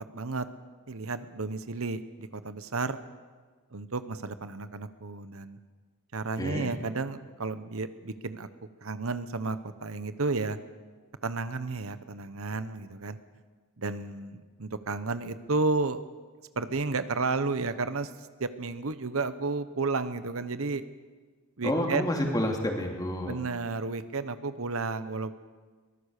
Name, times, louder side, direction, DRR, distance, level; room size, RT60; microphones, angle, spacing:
voice 1, 0.1-0.5 0.9-3.0 3.7-5.6 6.1-8.5 8.8-10.6 11.2-13.2 13.8-16.0 16.6-20.8 21.6-22.1 23.3-25.3, right 3 dB, 75° right, 12 dB, 1.0 m, -32 dB
voice 2, 6.4-6.7 21.6-23.4, left 1 dB, 20° left, 1 dB, 3.0 m, -29 dB
23.5 x 19.0 x 6.7 m, 1.4 s
head